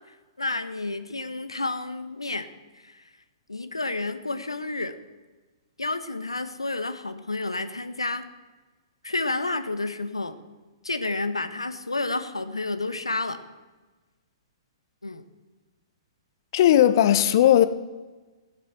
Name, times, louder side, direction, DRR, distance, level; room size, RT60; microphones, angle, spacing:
voice 1, 0.1-2.5 2.7-3.1 3.5-4.9 5.8-8.3 9.0-10.4 10.8-13.4 15.0-15.2, left 2 dB, 90° left, 1.2 m, -30 dB
voice 2, 16.5-17.7, left 11 dB, 50° left, 1.0 m, -17 dB
15.5 x 7.5 x 7.3 m
figure-of-eight pair, 115°, 3 cm